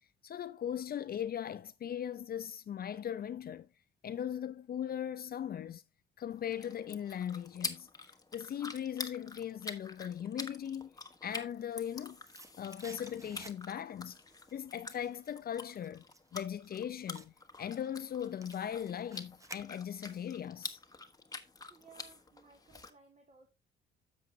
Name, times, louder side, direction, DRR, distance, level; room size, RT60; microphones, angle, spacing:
voice 1, 0.2-3.7 4.0-5.8 6.2-7.9 8.3-10.9 11.2-12.2 12.6-14.2 14.5-16.0 16.3-17.3 17.6-20.8, left 9 dB, 50° left, 0.6 m, -39 dB
sound 1, 6.3-22.9, left 3 dB, 20° left, 1.1 m, -47 dB
sound 2, 11.6-14.0 14.3-20.2 20.5-20.6, right 2 dB, 15° right, 0.8 m, -55 dB
voice 2, 21.7-23.5, right 5 dB, 35° right, 2.3 m, -60 dB
10.5 x 7.2 x 2.7 m
cardioid pair, 90°, 20 cm